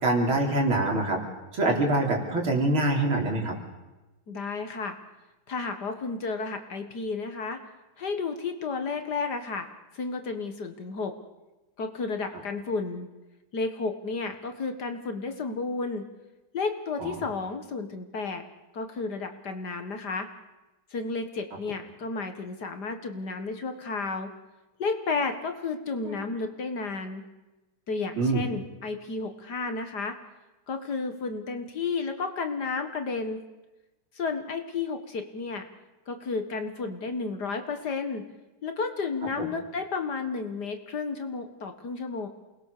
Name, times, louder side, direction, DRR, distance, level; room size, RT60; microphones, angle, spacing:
voice 1, 0.0-1.2 1.5-3.5 17.0-17.1 26.0-26.2 28.2-28.4 39.4-39.5, right 2 dB, 70° right, 1 dB, 4.6 m, -25 dB
voice 2, 4.3-5.0 5.5-7.6 8.0-9.7 9.9-11.1 11.8-13.1 13.5-16.1 16.5-18.4 18.7-20.3 20.9-24.3 24.8-27.2 27.9-30.2 30.7-33.4 34.2-35.7 36.1-38.2 38.6-42.3, left 4 dB, 50° left, 7 dB, 2.0 m, -32 dB
28.5 x 20.5 x 6.7 m, 1.1 s
omnidirectional pair, 2.3 m